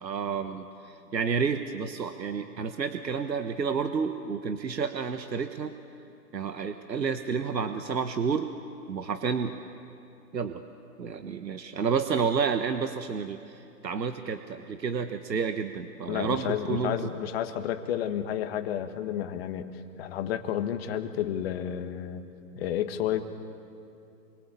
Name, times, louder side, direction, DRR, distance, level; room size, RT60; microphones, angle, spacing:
voice 1, 0.0-5.7 6.3-8.5 8.9-9.6 10.3-10.6 11.0-17.1, right 6 dB, 90° right, 8 dB, 1.5 m, -30 dB
voice 2, 16.1-22.2 22.6-23.2, left 10 dB, 40° left, 7 dB, 1.8 m, -31 dB
27.0 x 23.5 x 8.6 m, 2.7 s
hypercardioid pair, 140°, 49 cm